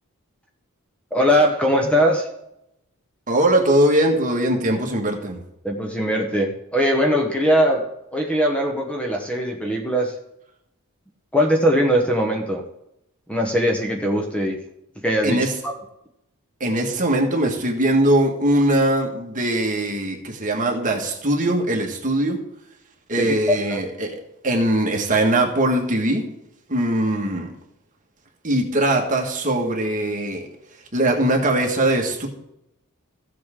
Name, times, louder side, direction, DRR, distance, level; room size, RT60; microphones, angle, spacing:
voice 1, 1.1-2.3 5.6-10.2 11.3-12.6 13.3-14.6 15.0-15.7 23.1-23.8, equal, 5° left, 1 dB, 1.0 m, -21 dB
voice 2, 3.3-5.4 15.2-15.5 16.6-22.4 23.1-26.3 26.7-27.5 28.4-30.5 30.9-32.3, right 1 dB, 35° right, 1 dB, 1.7 m, -21 dB
15.0 x 7.6 x 3.7 m, 0.82 s
head